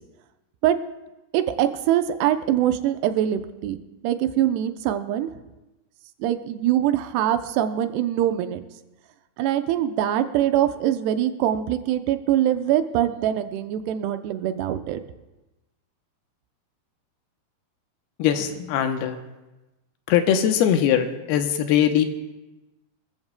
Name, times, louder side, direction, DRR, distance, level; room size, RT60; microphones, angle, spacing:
voice 1, 1.3-3.8 4.0-5.3 6.2-8.6 9.4-15.0, right 11 dB, 90° right, 8 dB, 2.8 m, -23 dB
voice 2, 18.2-19.2 20.1-22.0, left 9 dB, 80° left, 7 dB, 2.7 m, -21 dB
25.0 x 14.5 x 2.2 m, 1.1 s
omnidirectional pair, 4.6 m